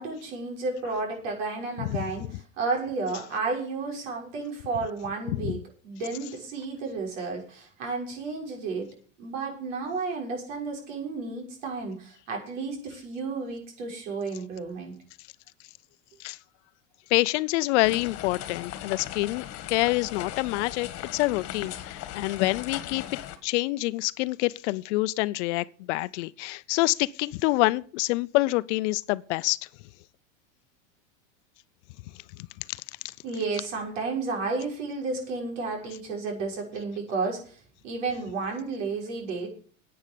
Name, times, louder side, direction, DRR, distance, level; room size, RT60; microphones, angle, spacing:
voice 1, 0.0-8.9 9.2-14.9 33.2-39.5, right 4 dB, 75° right, 6.3 m, -32 dB
voice 2, 17.1-23.0 23.4-29.6 32.7-32.8, left 20 dB, 65° left, 0.6 m, -26 dB
sound 1, 17.8-23.4, left 12 dB, 40° left, 1.6 m, -38 dB
10.0 x 8.9 x 6.9 m
supercardioid pair, 125°, 38 cm